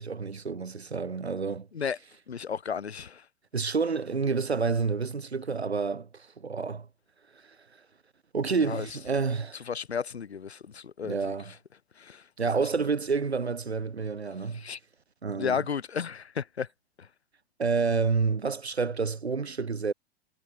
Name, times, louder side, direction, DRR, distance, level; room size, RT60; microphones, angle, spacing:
voice 1, 0.0-1.7 3.5-6.9 7.3-7.6 8.3-9.6 11.0-11.5 12.4-14.7 15.2-15.6 17.6-19.9, right 5 dB, 90° right, 2.7 m, -29 dB
voice 2, 2.3-3.3 8.6-8.9 9.7-11.3 12.0-12.3 14.5-14.8 15.4-16.7 17.0-17.1, left 6 dB, 90° left, 1.0 m, -33 dB
figure-of-eight pair, 100°, 31 cm